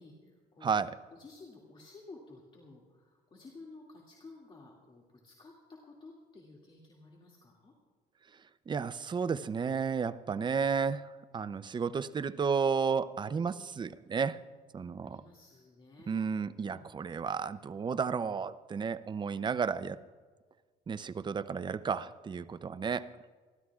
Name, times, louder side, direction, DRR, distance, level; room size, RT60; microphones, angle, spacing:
voice 1, 0.0-0.8 1.1-7.7 15.0-16.2 16.6-16.9, left 3 dB, 30° left, -2 dB, 2.3 m, -53 dB
voice 2, 8.7-11.1 11.3-14.4 14.7-15.2 16.1-20.0 20.9-23.1, right 6 dB, 25° right, 14 dB, 0.6 m, -32 dB
29.0 x 12.5 x 2.4 m, 1.5 s
cardioid pair, 110°, 17 cm